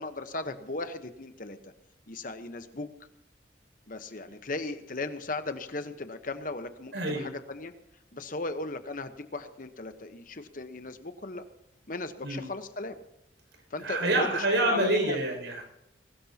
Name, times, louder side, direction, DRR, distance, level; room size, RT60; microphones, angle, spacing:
voice 1, 0.0-1.7 2.1-2.9 3.9-7.7 8.1-11.4 11.9-13.0 13.7-15.2, left 2 dB, 45° left, 9 dB, 1.1 m, -37 dB
voice 2, 6.9-7.3 12.2-12.4 13.8-15.6, right 2 dB, 80° right, 2 dB, 6.1 m, -27 dB
22.5 x 19.0 x 2.9 m, 0.84 s
head